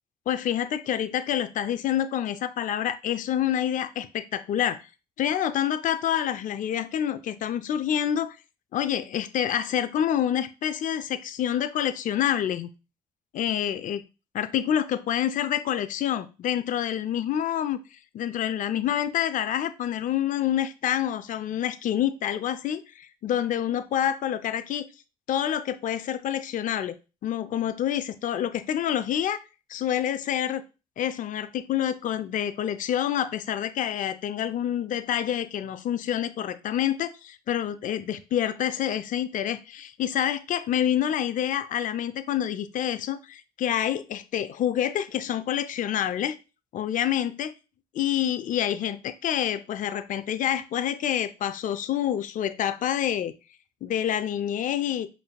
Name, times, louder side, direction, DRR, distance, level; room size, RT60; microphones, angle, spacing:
voice 1, 0.3-4.8 5.2-8.4 8.7-12.7 13.3-14.0 14.3-17.8 18.1-24.9 25.3-26.9 27.2-29.4 29.7-30.6 31.0-46.4 46.7-47.5 47.9-53.3 53.8-55.1, left 10 dB, 60° left, 0.4 m, -27 dB
5.2 x 2.6 x 2.3 m
supercardioid pair, 65°, 16 cm